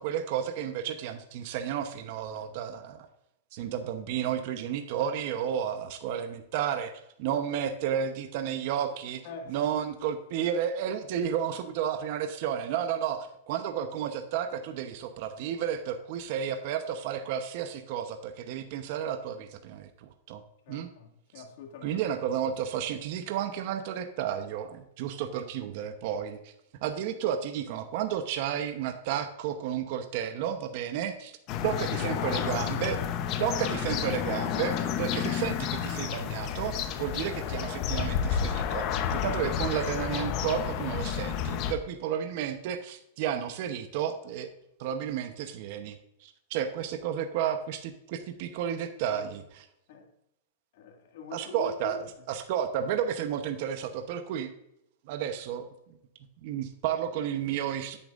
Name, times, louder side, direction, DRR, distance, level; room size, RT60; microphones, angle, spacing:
voice 1, 0.0-3.1 3.5-6.9 7.2-9.2 9.5-20.4 20.7-20.9 21.8-26.5 26.8-31.3 31.6-33.0 33.4-44.5 44.8-49.4 51.3-52.0 52.3-54.5 55.1-55.7 56.4-58.0, right 9 dB, 50° right, 0.8 m, -32 dB
voice 2, 9.2-9.7 20.6-22.0 32.0-32.9 49.1-49.3 49.9-50.1 50.7-52.0, left 5 dB, 60° left, 1.9 m, -45 dB
sound 1, 31.5-41.7, left 8 dB, 40° left, 0.8 m, -30 dB
10.0 x 8.8 x 2.5 m
hypercardioid pair, 140°, 0 cm